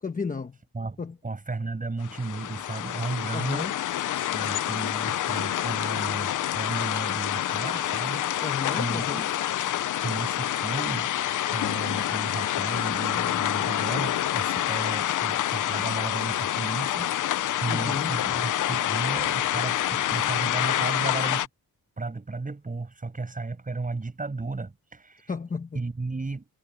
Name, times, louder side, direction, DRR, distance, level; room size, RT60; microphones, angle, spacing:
voice 1, 0.0-0.6 1.0-1.1 3.3-3.7 8.4-9.3 17.7-18.2 25.3-25.8, left 5 dB, 25° left, 1.0 m, -33 dB
voice 2, 0.7-3.7 4.3-9.2 10.0-11.1 11.5-21.5 22.0-25.3 25.7-26.5, right 3 dB, 25° right, 6.2 m, -34 dB
sound 1, 2.0-21.5, left 12 dB, 60° left, 0.5 m, -27 dB
wide cardioid pair, 165°, 35 cm